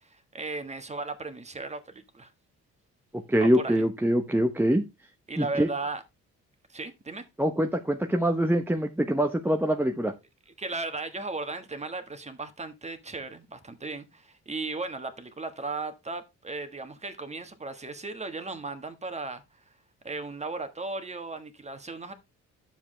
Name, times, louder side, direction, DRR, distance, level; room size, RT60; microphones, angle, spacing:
voice 1, 0.0-2.3 3.4-3.8 5.3-6.0 6.7-7.2 10.6-19.4 20.0-22.1, right 3 dB, 20° right, 1.4 m, -36 dB
voice 2, 3.3-4.8 5.4-5.7 7.4-10.1, right 1 dB, 5° right, 0.8 m, -24 dB
9.8 x 7.2 x 3.2 m
cardioid pair, 90°, 30 cm